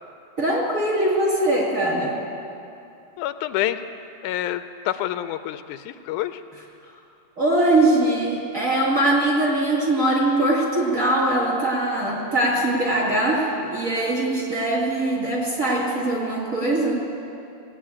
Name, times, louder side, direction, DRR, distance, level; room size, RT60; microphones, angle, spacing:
voice 1, 0.4-2.2 7.4-17.1, right 1 dB, 30° right, -4 dB, 2.2 m, -21 dB
voice 2, 3.2-3.8 4.2-6.4, left 13 dB, 85° left, 10 dB, 2.0 m, -27 dB
17.5 x 8.9 x 8.7 m, 2.7 s
omnidirectional pair, 3.5 m